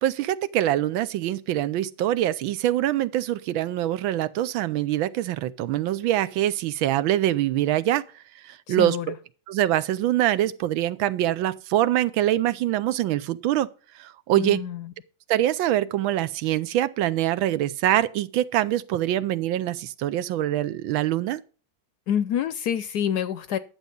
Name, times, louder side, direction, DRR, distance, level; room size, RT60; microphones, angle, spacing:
voice 1, 0.0-8.0 8.4-9.1 9.5-13.7 13.9-14.6 15.3-21.4, right 13 dB, 80° right, 1.5 m, -24 dB
voice 2, 8.7-9.1 14.4-14.9 22.1-23.6, left 9 dB, 70° left, 1.0 m, -27 dB
11.0 x 7.2 x 5.2 m
omnidirectional pair, 2.1 m